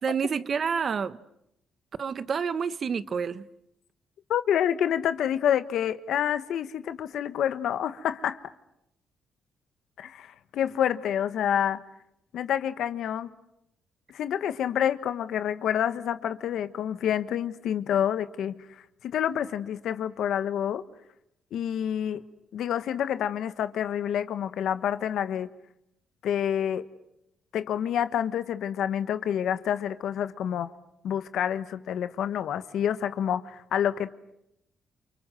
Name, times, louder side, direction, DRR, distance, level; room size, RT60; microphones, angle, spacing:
voice 1, 0.0-1.2 2.0-3.5, right 6 dB, 50° right, 1.2 m, -28 dB
voice 2, 4.3-8.4 10.0-11.8 12.3-13.3 14.1-18.6 19.0-20.8 21.5-22.2 22.5-25.5 26.2-26.9 27.5-30.7 31.0-34.1, left 9 dB, 75° left, 1.2 m, -28 dB
29.5 x 24.5 x 7.7 m
cardioid pair, 90°, 0 cm